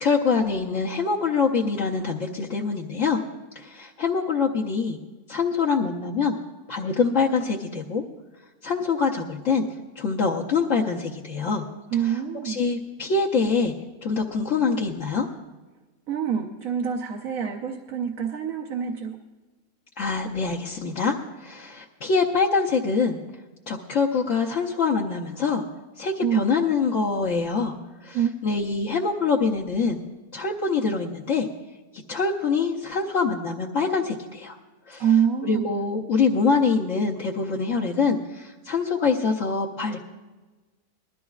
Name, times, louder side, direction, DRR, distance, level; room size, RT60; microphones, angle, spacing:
voice 1, 0.0-3.2 3.5-5.0 5.3-6.4 6.7-8.0 8.6-9.6 10.0-11.6 12.4-13.7 14.0-15.3 20.0-21.1 21.4-23.2 23.7-25.6 26.0-27.7 28.0-30.0 30.3-31.5 32.1-34.6 34.9-35.0 35.4-40.0, left 4 dB, 60° left, -3 dB, 1.1 m, -24 dB
voice 2, 11.9-12.6 16.1-19.2 26.2-26.5 28.1-28.3 35.0-35.7, right 8 dB, 65° right, 2 dB, 1.2 m, -25 dB
21.0 x 13.0 x 2.4 m, 1.2 s
omnidirectional pair, 1.6 m